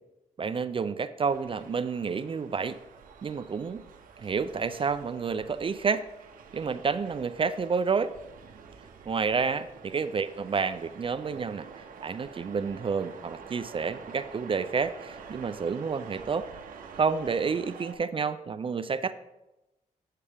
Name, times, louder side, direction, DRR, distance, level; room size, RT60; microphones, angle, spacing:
voice 1, 0.4-2.8 3.2-3.8 4.2-6.0 6.5-8.1 9.1-9.7 9.9-11.7 12.0-16.4 17.0-19.1, right 5 dB, 40° right, 13 dB, 0.4 m, -29 dB
sound 1, 1.2-17.9, right 6 dB, 85° right, 0.8 m, -48 dB
8.5 x 6.6 x 3.4 m, 0.97 s
cardioid pair, 60°, 14 cm